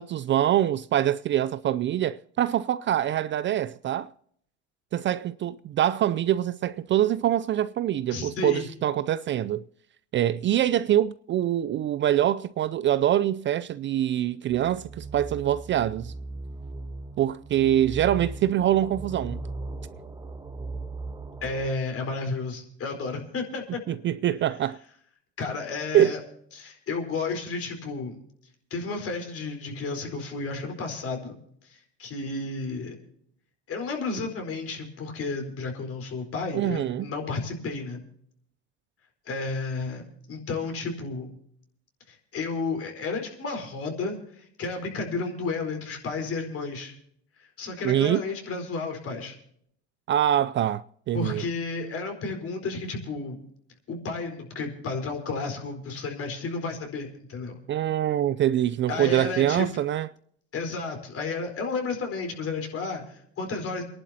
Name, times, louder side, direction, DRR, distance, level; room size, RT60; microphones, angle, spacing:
voice 1, 0.0-4.1 4.9-9.6 10.1-16.1 17.2-19.4 23.9-24.8 25.9-26.1 36.5-37.1 47.8-48.2 50.1-51.4 57.7-60.1, right 11 dB, 35° right, 0.4 m, -24 dB
voice 2, 8.1-8.7 21.4-23.8 25.4-26.2 26.5-28.2 28.7-31.3 31.7-33.0 33.7-38.0 39.2-40.0 40.3-41.3 42.1-46.9 47.4-49.4 51.1-53.4 53.9-57.6 58.9-59.7 60.5-63.8, left 3 dB, 45° left, 4.4 m, -32 dB
sound 1, 14.5-21.7, right 3 dB, 10° right, 1.6 m, -38 dB
29.0 x 11.0 x 2.8 m
supercardioid pair, 85°, 33 cm